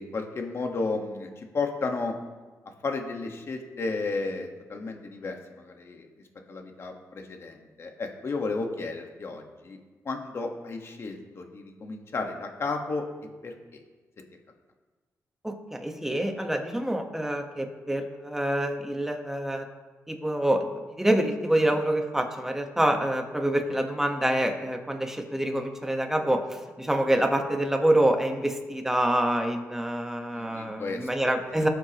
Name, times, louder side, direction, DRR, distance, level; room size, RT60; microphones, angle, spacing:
voice 1, 0.0-2.1 2.8-6.1 6.5-9.8 10.0-13.0 13.4-13.8 30.3-31.1, left 3 dB, 45° left, 3 dB, 1.4 m, -33 dB
voice 2, 15.4-19.7 20.1-20.7 21.0-31.7, right 1 dB, 5° right, 4 dB, 1.2 m, -26 dB
18.0 x 7.7 x 3.0 m, 1.3 s
cardioid pair, 105°, 6 cm